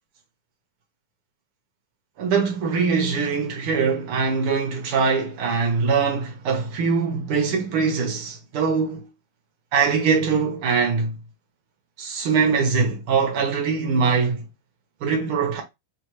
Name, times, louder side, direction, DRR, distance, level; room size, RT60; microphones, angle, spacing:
voice 1, 2.2-9.1 9.7-11.1 12.0-14.4 15.0-15.6, right 5 dB, 75° right, 1.2 m, -22 dB
5.1 x 2.6 x 3.0 m
omnidirectional pair, 3.9 m